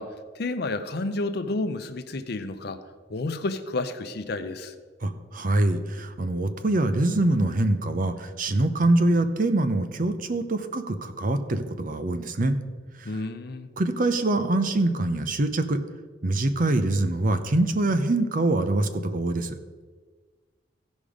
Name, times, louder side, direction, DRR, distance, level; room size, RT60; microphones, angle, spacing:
voice 1, 0.0-2.8 3.1-4.7 13.0-13.7, left 2 dB, 60° left, 10 dB, 0.7 m, -31 dB
voice 2, 5.0-12.6 13.0-13.2 13.8-15.8 16.2-19.5, right 2 dB, 50° right, 9 dB, 0.7 m, -24 dB
15.5 x 5.3 x 5.0 m, 1.5 s
head